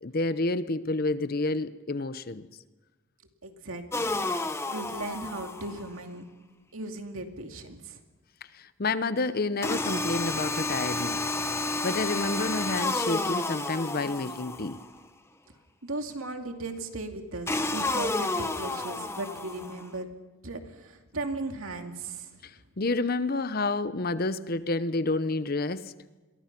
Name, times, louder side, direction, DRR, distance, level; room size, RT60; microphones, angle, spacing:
voice 1, 0.0-2.5 8.5-11.2 11.8-14.8 22.4-25.9, left 2 dB, 45° left, 0.8 m, -29 dB
voice 2, 3.4-6.3 6.7-8.0 15.8-20.1 20.4-22.3, right 2 dB, 75° right, 2.5 m, -37 dB
sound 1, 3.9-5.9 9.6-14.9 17.5-19.9, left 2 dB, 10° left, 0.9 m, -31 dB
27.5 x 22.5 x 6.0 m
head